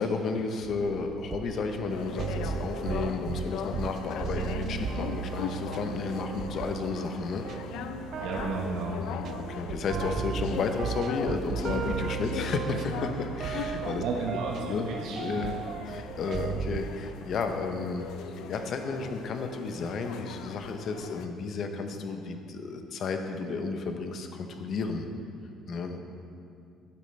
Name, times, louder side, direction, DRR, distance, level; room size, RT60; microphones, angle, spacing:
voice 1, 0.0-7.4 9.0-13.1 13.4-14.0 14.6-15.6 15.9-25.1 25.7-26.0, left 4 dB, 45° left, 6 dB, 0.8 m, -32 dB
sound 1, 0.6-16.9, right 7 dB, 45° right, 0.3 m, -36 dB
sound 2, 1.9-21.2, left 8 dB, 80° left, 0.4 m, -41 dB
voice 2, 8.2-9.0 14.0-15.5, right 4 dB, 90° right, -2 dB, 1.0 m, -33 dB
sound 3, 14.1-17.8, equal, ahead, 0.6 m, -51 dB
12.0 x 8.8 x 3.3 m, 2.4 s
cardioid pair, 145°, 0 cm